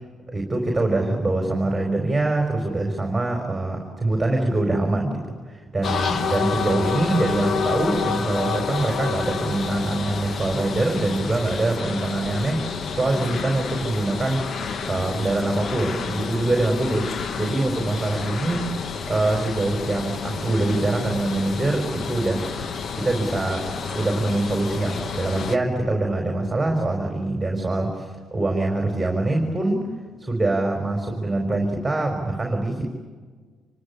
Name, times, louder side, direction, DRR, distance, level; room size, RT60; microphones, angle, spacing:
voice 1, 0.3-12.6 12.9-14.4 14.9-17.1 17.4-18.7 19.1-22.4 22.9-23.7 23.9-29.8 30.2-32.8, right 2 dB, 10° right, 1 dB, 4.9 m, -24 dB
sound 1, 5.8-25.6, left 6 dB, 50° left, 1.1 m, -29 dB
27.0 x 24.0 x 8.6 m, 1.5 s
cardioid pair, 115°, 0 cm